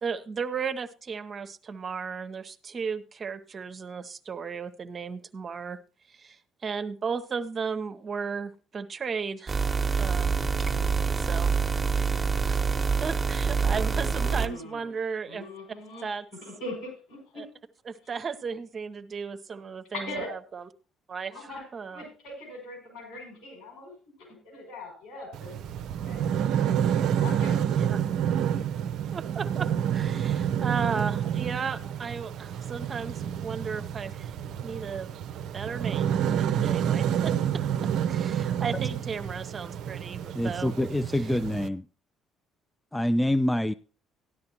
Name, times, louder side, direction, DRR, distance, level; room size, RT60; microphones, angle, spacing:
voice 1, 0.0-5.8 6.1-9.7 10.0-10.3 11.2-12.6 13.0-15.5 16.0-16.2 17.4-17.5 17.9-20.6 21.1-22.0 27.7-28.0 29.1-34.3 34.6-35.2 35.5-37.3 38.1-40.7, right 5 dB, 40° right, 0.8 m, -35 dB
sound 1, 9.5-14.5, right 5 dB, 25° right, 1.1 m, -26 dB
voice 2, 13.5-14.9 15.3-16.1 16.4-17.5 19.9-20.3 21.3-23.9 24.2-25.5 26.0-26.8 27.2-28.0, left 2 dB, 75° left, 5.9 m, -41 dB
sound 2, 25.3-41.7, right 9 dB, 65° right, 0.6 m, -29 dB
voice 3, 40.3-41.9 42.9-43.7, left 1 dB, 10° left, 0.4 m, -26 dB
13.5 x 10.5 x 2.9 m
hypercardioid pair, 55°, 0 cm